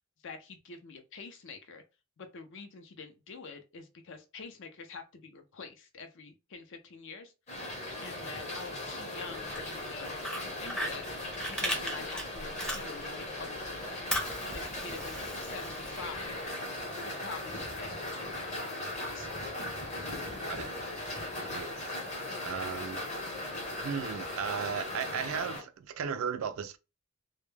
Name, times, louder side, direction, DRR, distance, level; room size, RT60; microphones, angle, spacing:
voice 1, 0.2-1.8 2.2-7.3 8.0-10.1 10.4-11.1 11.4-14.1 14.4-16.4 17.0-18.8 19.1-19.3, left 4 dB, 60° left, 0.5 m, -46 dB
sound 1, 7.5-25.6, left 1 dB, 35° left, 0.8 m, -38 dB
Fire, 9.4-13.3 13.6-16.4, equal, 5° left, 0.6 m, -37 dB
voice 2, 20.4-20.8 21.5-21.7 22.4-23.0 23.8-26.8, right 7 dB, 70° right, 0.4 m, -35 dB
2.1 x 2.1 x 3.2 m
head